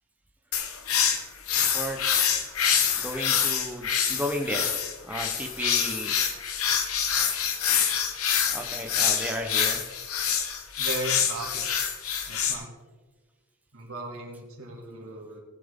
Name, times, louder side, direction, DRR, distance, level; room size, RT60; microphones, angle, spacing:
sound 1, 0.5-12.5, left 8 dB, 70° left, 1.4 m, -26 dB
voice 1, 3.0-4.7 5.0-6.2 8.5-9.8, equal, 5° right, 2 dB, 0.9 m, -33 dB
voice 2, 10.8-11.7 12.3-12.7 13.7-15.4, right 2 dB, 65° right, -1 dB, 2.7 m, -37 dB
19.0 x 7.6 x 3.7 m, 1.4 s
head